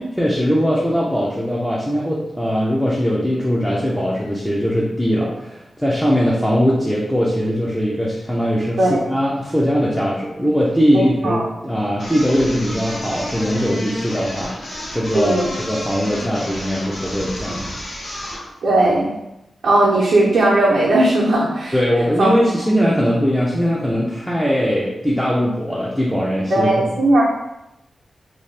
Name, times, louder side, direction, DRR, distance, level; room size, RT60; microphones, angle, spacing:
voice 1, 0.2-14.5 14.9-17.7 21.7-26.9, equal, ahead, -5 dB, 0.4 m, -20 dB
voice 2, 10.9-11.4 15.1-15.5 18.6-19.1 19.6-21.8 22.2-22.3 26.5-27.2, right 1 dB, 85° right, -7 dB, 0.6 m, -17 dB
sound 1, 12.0-18.5, left 1 dB, 70° left, 0.8 m, -31 dB
2.6 x 2.3 x 3.2 m, 0.91 s
wide cardioid pair, 105°, 0 cm